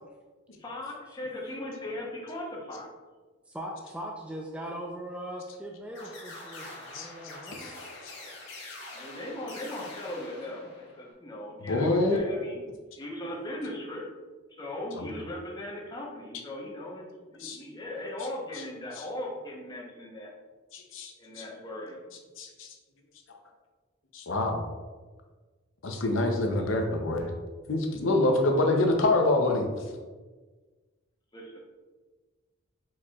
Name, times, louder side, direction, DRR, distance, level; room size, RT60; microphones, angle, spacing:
voice 1, 0.6-2.9 8.9-12.6 13.0-14.1 14.5-20.3 21.2-22.0 31.3-31.6, left 1 dB, 20° left, -3 dB, 0.8 m, -38 dB
voice 2, 3.5-7.8, right 1 dB, 5° right, -1 dB, 0.3 m, -40 dB
sound 1, 5.9-11.1, left 2 dB, 60° left, 1.3 m, -45 dB
voice 3, 11.6-12.2 15.0-15.1 17.4-17.6 20.7-21.1 21.4-21.5 22.4-22.7 23.3-23.4 24.1-24.6 25.8-27.3 27.7-29.7, left 2 dB, 75° left, 3 dB, 0.7 m, -26 dB
4.6 x 4.2 x 2.3 m, 1.4 s
head